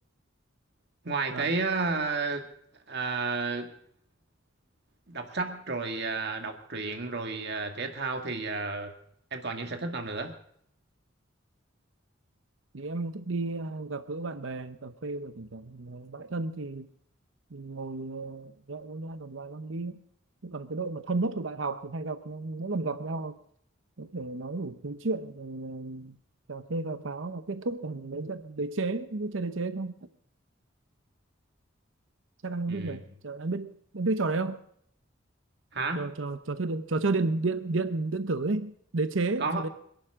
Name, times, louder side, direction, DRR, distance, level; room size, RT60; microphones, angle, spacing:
voice 1, 1.0-2.5 2.9-3.7 5.1-8.9 9.3-10.3 32.7-33.0 35.7-36.1 39.4-39.6, right 3 dB, 60° right, 2.0 m, -31 dB
voice 2, 12.7-16.9 17.5-20.0 20.4-23.4 24.0-26.2 26.5-30.1 32.4-34.6 35.9-39.7, right 3 dB, 75° right, 0.9 m, -32 dB
26.5 x 11.5 x 3.7 m
head